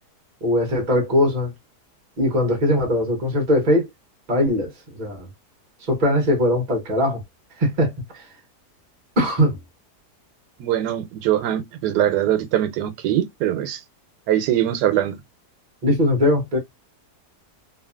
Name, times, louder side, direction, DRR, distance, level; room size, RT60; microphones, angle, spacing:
voice 1, 0.4-1.5 2.2-3.9 4.3-5.3 5.9-7.2 7.6-8.3 9.2-9.6 15.8-16.6, left 1 dB, 40° right, 0.7 m, -20 dB
voice 2, 10.6-13.8 14.3-15.2, right 12 dB, 85° right, 1.2 m, -22 dB
2.7 x 2.6 x 2.2 m
omnidirectional pair, 1.7 m